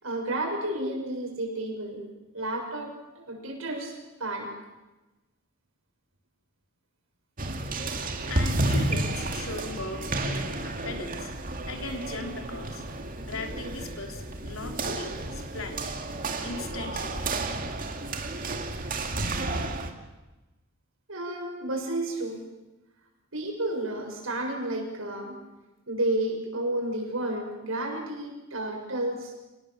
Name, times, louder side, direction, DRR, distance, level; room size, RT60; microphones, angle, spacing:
voice 1, 0.0-2.0 2.3-4.5 21.1-22.4 23.3-25.4 25.9-29.3, right 1 dB, 85° right, 1 dB, 7.0 m, -31 dB
sound 1, 7.4-19.9, right 2 dB, 45° right, 2.3 m, -31 dB
voice 2, 8.3-11.3 11.6-12.8 13.2-16.0 16.4-17.4, left 2 dB, 90° left, 3 dB, 3.7 m, -38 dB
27.5 x 19.5 x 7.5 m, 1.1 s
head